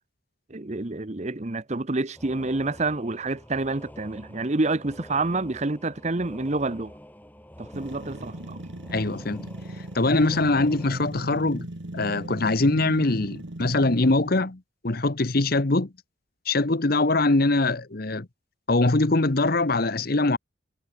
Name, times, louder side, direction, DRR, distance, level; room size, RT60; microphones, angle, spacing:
voice 1, 0.5-6.9 7.6-8.6, right 2 dB, 35° right, 0.9 m, -28 dB
sound 1, 2.1-11.1, equal, 10° left, 3.9 m, -47 dB
sound 2, 7.7-14.5, right 1 dB, 60° right, 1.7 m, -39 dB
voice 2, 8.9-9.5 9.9-11.7 11.9-15.9 16.5-18.3 18.7-20.4, left 2 dB, 50° left, 1.1 m, -23 dB
head